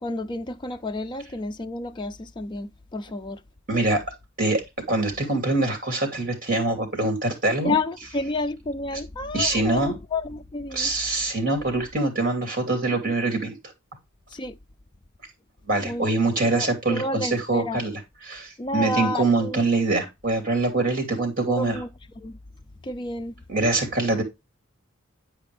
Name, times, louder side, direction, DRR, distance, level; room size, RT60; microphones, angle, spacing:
voice 1, 0.0-3.4 7.6-10.9 14.3-14.6 15.8-16.2 16.4-17.8 18.6-19.6 21.6-21.9 22.2-22.4 22.8-23.3, left 2 dB, 20° left, 0.4 m, -30 dB
voice 2, 3.7-4.0 4.4-4.6 4.9-7.8 8.9-9.0 9.3-10.0 10.7-13.6 15.7-21.8 23.5-24.2, right 2 dB, 40° right, 2.7 m, -24 dB
9.0 x 5.0 x 3.3 m
head